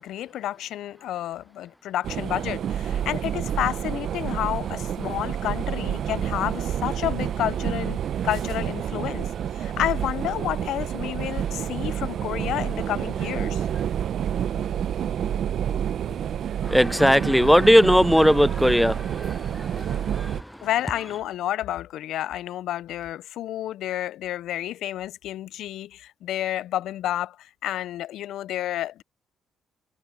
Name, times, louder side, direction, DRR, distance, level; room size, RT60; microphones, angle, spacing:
voice 1, 0.0-13.7 20.6-29.0, left 13 dB, 80° left, 0.4 m, -30 dB
sound 1, 2.0-20.4, right 9 dB, 65° right, 0.8 m, -29 dB
voice 2, 16.6-20.7, equal, ahead, 0.5 m, -19 dB
cardioid pair, 90°, 0 cm